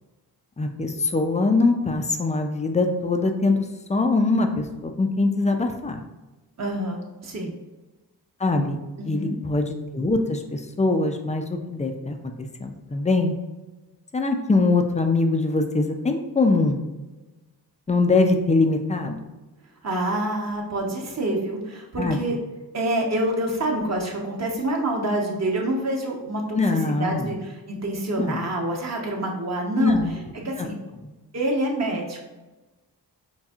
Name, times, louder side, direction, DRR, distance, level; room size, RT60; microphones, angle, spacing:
voice 1, 0.6-6.0 8.4-8.8 9.1-12.2 12.6-13.3 14.1-16.8 17.9-19.3 22.0-22.2 26.5-27.3 28.2-28.4 29.8-30.1 30.6-30.7 31.0-31.1, left 3 dB, 20° left, 5 dB, 0.4 m, -22 dB
voice 2, 6.6-7.5 9.0-9.3 19.8-22.4 22.7-26.6 26.9-30.0 30.4-30.7 31.3-32.2, right 1 dB, 40° right, -1 dB, 1.0 m, -27 dB
5.6 x 2.6 x 2.4 m, 1.1 s
cardioid pair, 95°, 42 cm